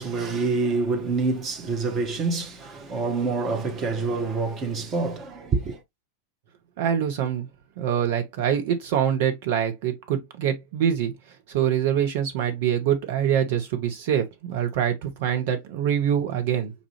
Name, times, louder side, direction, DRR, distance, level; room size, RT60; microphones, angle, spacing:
voice 1, 0.0-5.8, right 4 dB, 25° right, 0.7 m, -26 dB
voice 2, 6.8-7.5 7.8-11.1 11.5-16.7, right 9 dB, 50° right, 1.0 m, -24 dB
5.3 x 2.5 x 3.0 m
figure-of-eight pair, 90°, 0 cm